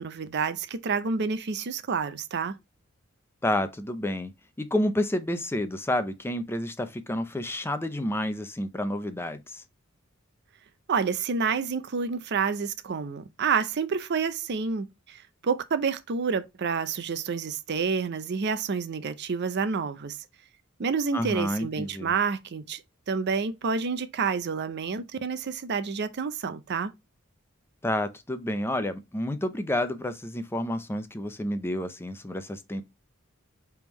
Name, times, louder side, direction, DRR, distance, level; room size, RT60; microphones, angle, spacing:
voice 1, 0.0-2.6 10.9-20.2 20.8-22.8 23.1-26.9, right 5 dB, 55° right, 0.5 m, -29 dB
voice 2, 3.4-4.3 4.6-9.6 21.1-22.1 27.8-32.8, left 1 dB, 10° left, 0.5 m, -29 dB
5.0 x 3.5 x 3.0 m
head